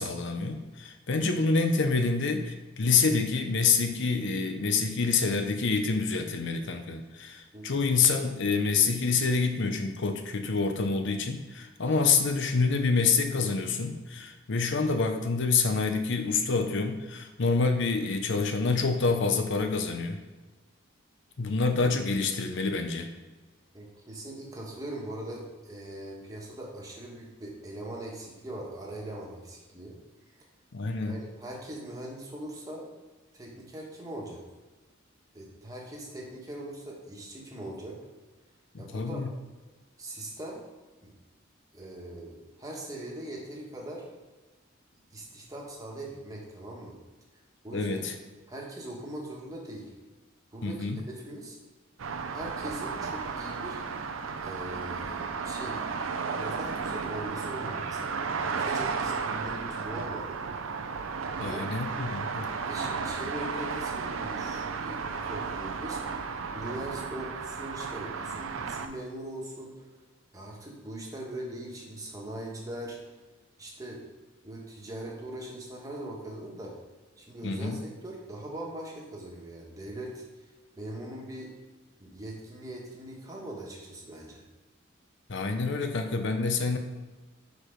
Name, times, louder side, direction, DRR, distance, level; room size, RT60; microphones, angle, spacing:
voice 1, 0.0-20.2 21.4-23.1 30.7-31.2 38.7-39.3 47.7-48.1 50.6-51.0 61.4-62.5 77.4-77.8 85.3-86.8, left 4 dB, 65° left, 6 dB, 0.6 m, -27 dB
voice 2, 23.7-30.0 31.0-32.9 33.3-34.4 35.3-38.0 38.8-39.2 40.0-40.6 41.0-41.1 41.7-44.0 45.1-47.0 47.6-48.0 48.5-49.9 50.5-51.6 52.3-53.8 54.4-55.8 56.4-60.3 61.3-61.7 62.6-66.0 66.5-69.9 70.3-73.0 73.6-74.0 74.4-76.7 77.2-80.5 80.8-81.5 82.0-84.4, right 1 dB, 20° right, -3 dB, 1.4 m, -41 dB
sound 1, 52.0-68.9, right 5 dB, 80° right, 0.6 m, -34 dB
6.7 x 4.6 x 5.1 m, 1.2 s
head